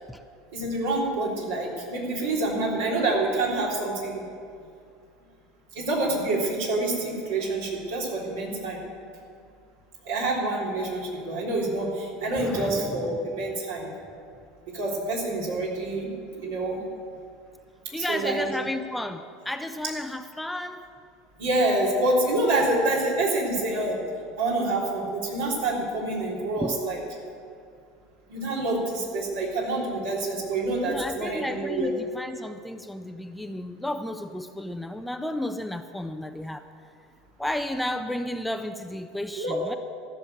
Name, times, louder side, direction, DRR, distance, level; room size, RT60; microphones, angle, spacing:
voice 1, 0.5-4.2 5.8-8.8 10.0-13.9 14.7-16.1 16.4-16.8 18.0-18.5 21.4-24.0 24.4-27.0 28.3-31.9 39.4-39.8, right 2 dB, 65° right, -3 dB, 3.5 m, -27 dB
voice 2, 12.4-13.1 17.9-20.9 26.6-26.8 30.8-36.6 37.4-39.8, left 1 dB, 5° left, 8 dB, 0.6 m, -32 dB
14.0 x 7.1 x 9.4 m, 2.3 s
figure-of-eight pair, 75°, 0 cm